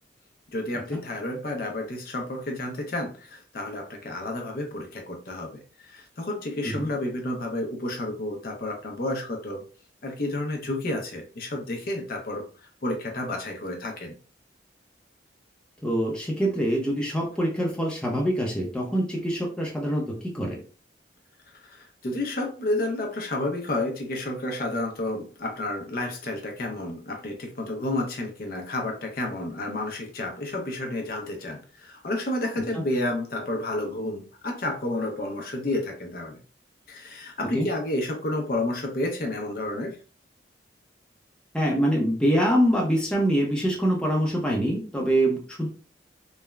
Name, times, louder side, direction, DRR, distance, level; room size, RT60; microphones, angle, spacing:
voice 1, 0.5-9.6 10.0-12.5 12.8-14.2 21.5-36.4 36.9-40.0, left 1 dB, 50° left, 0.5 m, -31 dB
voice 2, 15.8-20.6 37.5-37.7 41.5-45.7, equal, 5° left, 0.5 m, -24 dB
3.1 x 2.0 x 2.2 m
head